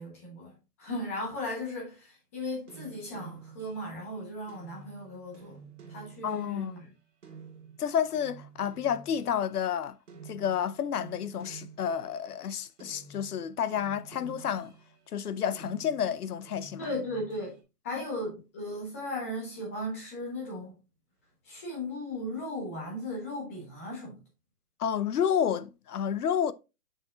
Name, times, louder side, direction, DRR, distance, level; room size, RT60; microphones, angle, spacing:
voice 1, 0.0-5.6 5.9-6.9 16.8-17.6 17.8-20.7 21.4-24.2, left 1 dB, 10° left, 1.0 m, -36 dB
sound 1, 2.7-9.8 10.1-12.4 12.8-15.1 15.5-17.6, right 5 dB, 50° right, 2.1 m, -50 dB
voice 2, 6.2-6.8 7.8-10.0 10.3-14.7 15.1-16.9 24.8-26.5, left 8 dB, 70° left, 0.7 m, -30 dB
6.9 x 5.6 x 2.4 m
hypercardioid pair, 175°, 47 cm